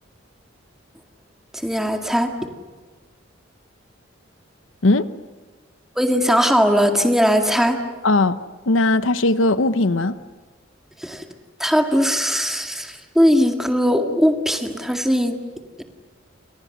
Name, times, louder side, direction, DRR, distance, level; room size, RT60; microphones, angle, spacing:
voice 1, 1.5-2.3 6.0-7.8 11.0-11.2 11.6-15.4, equal, ahead, 4 dB, 2.0 m, -19 dB
voice 2, 8.0-8.4 8.7-10.2, left 2 dB, 85° left, 13 dB, 0.9 m, -18 dB
30.0 x 26.5 x 6.6 m, 1.4 s
head